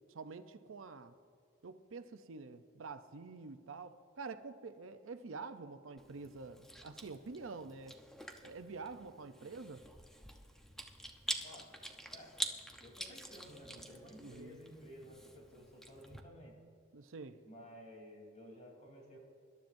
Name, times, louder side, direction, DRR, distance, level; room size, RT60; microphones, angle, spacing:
voice 1, 0.1-1.1 1.6-8.0 8.4-9.8 14.2-14.6 16.9-17.4, right 4 dB, 80° right, 10 dB, 0.6 m, -47 dB
Chewing mastication, 6.0-16.2, equal, 5° left, 0.8 m, -47 dB
voice 2, 11.4-11.8 12.1-12.4 12.8-16.5 17.4-19.2, equal, 40° left, -1 dB, 3.5 m, -54 dB
25.0 x 12.0 x 2.6 m, 2.3 s
head